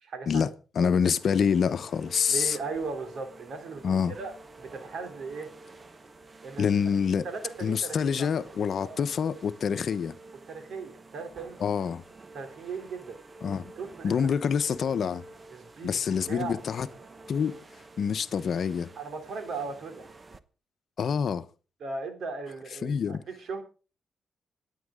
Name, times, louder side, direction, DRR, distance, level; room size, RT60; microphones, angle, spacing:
voice 1, 0.0-0.5 0.8-0.9 2.3-4.3 4.6-5.5 6.4-6.7 7.2-8.3 8.8-9.0 10.5-11.6 12.3-13.2 13.7-14.3 15.5-16.0 16.3-16.7 19.0-20.1 21.8-23.6, right 4 dB, 70° right, 3.3 m, -37 dB
voice 2, 0.7-2.6 3.8-4.2 6.6-7.3 7.6-10.1 11.6-12.0 13.4-13.7 14.0-15.2 15.8-16.9 17.3-17.6 18.0-18.9 21.0-21.5 22.8-23.2, left 7 dB, 65° left, 0.9 m, -26 dB
sound 1, 1.1-20.4, right 2 dB, 35° right, 1.1 m, -49 dB
26.0 x 9.3 x 3.8 m
cardioid pair, 75°, 0 cm